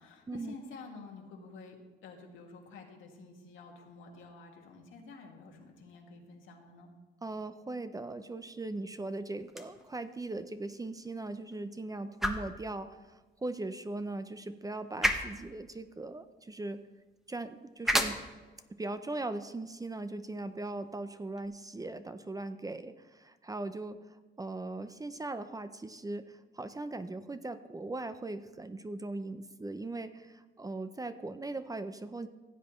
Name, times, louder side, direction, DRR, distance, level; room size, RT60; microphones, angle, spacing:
voice 1, 0.0-6.9, left 4 dB, 80° left, 1 dB, 2.0 m, -50 dB
voice 2, 7.2-16.8 17.3-18.2 18.7-32.3, right 2 dB, 20° right, 11 dB, 0.6 m, -39 dB
sound 1, 9.4-21.5, equal, ahead, 1.1 m, -38 dB
15.5 x 8.3 x 3.1 m, 1.2 s
cardioid pair, 90°, 20 cm